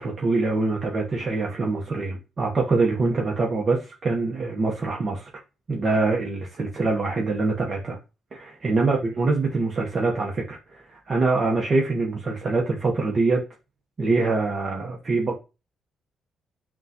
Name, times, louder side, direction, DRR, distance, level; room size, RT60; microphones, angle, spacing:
voice 1, 0.0-5.3 5.7-8.0 8.3-13.4 14.0-15.3, right 3 dB, 40° right, 0.8 m, -24 dB
5.9 x 2.4 x 2.8 m
cardioid pair, 90°, 0 cm